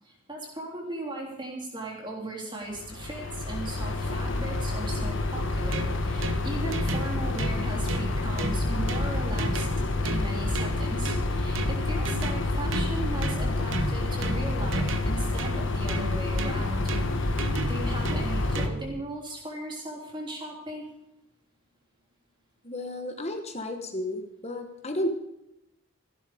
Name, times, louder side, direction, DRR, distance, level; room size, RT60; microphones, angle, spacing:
voice 1, 0.1-9.7 10.0-17.3 17.7-20.9, right 2 dB, 20° right, -1 dB, 3.5 m, -37 dB
sound 1, 2.7-18.7, left 2 dB, 55° left, 1.5 m, -28 dB
sound 2, 5.3-19.0, right 3 dB, 60° right, 1.0 m, -35 dB
voice 2, 22.6-25.2, left 1 dB, 30° left, 6 dB, 1.1 m, -32 dB
14.5 x 12.0 x 5.1 m, 0.88 s
head